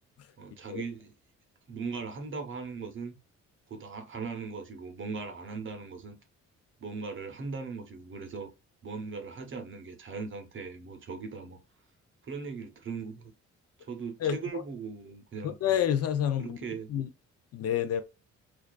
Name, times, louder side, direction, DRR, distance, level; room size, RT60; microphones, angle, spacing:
voice 1, 0.4-1.1 1.7-3.1 3.7-6.2 6.8-8.5 8.8-11.6 12.2-13.3 13.9-15.5 16.4-16.9, right 4 dB, 40° right, 0.7 m, -39 dB
voice 2, 15.4-16.6 16.9-17.1 17.5-18.0, left 10 dB, 55° left, 0.4 m, -28 dB
2.3 x 2.3 x 2.2 m
cardioid pair, 90°, 30 cm